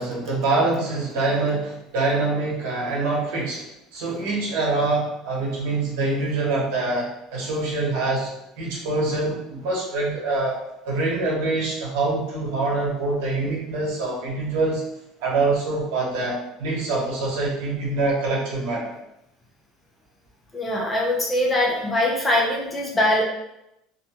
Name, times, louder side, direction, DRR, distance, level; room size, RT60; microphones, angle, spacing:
voice 1, 0.0-3.7 3.9-8.3 8.6-10.6 10.9-14.8 15.2-18.9, right 3 dB, 90° right, -4 dB, 1.0 m, -25 dB
voice 2, 20.5-23.2, left 1 dB, 15° left, -2 dB, 0.6 m, -22 dB
2.6 x 2.2 x 2.8 m, 0.85 s
cardioid pair, 140°, 0 cm